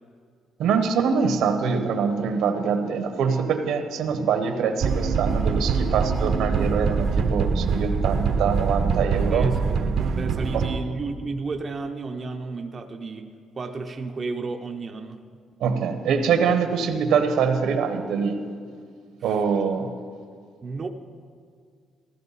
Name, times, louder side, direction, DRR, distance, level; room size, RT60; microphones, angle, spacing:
voice 1, 0.6-9.5 10.5-10.6 15.6-18.5 19.2-19.9, right 6 dB, 80° right, 7 dB, 1.1 m, -24 dB
sound 1, 4.8-10.8, right 5 dB, 60° right, 0.8 m, -24 dB
voice 2, 9.3-9.8 10.2-13.3 13.5-15.2 19.2-19.5 20.6-20.9, right 3 dB, 30° right, 3 dB, 0.7 m, -32 dB
14.0 x 14.0 x 4.1 m, 2.1 s
cardioid pair, 125°, 0 cm